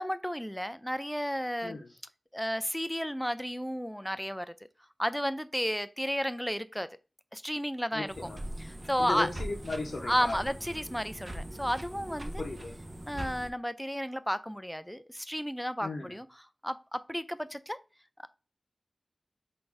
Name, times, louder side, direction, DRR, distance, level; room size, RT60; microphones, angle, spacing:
voice 1, 0.0-1.8 2.3-4.5 5.0-6.9 7.3-8.1 8.6-9.3 10.0-12.4 13.1-16.3 16.6-17.8, equal, 5° left, 0.3 m, -32 dB
voice 2, 7.9-8.4 9.0-10.4 12.4-12.8 15.8-16.2, left 3 dB, 80° left, 0.8 m, -36 dB
sound 1, 8.1-13.5, right 1 dB, 35° right, 0.8 m, -41 dB
3.8 x 2.6 x 4.5 m
wide cardioid pair, 80°, 0 cm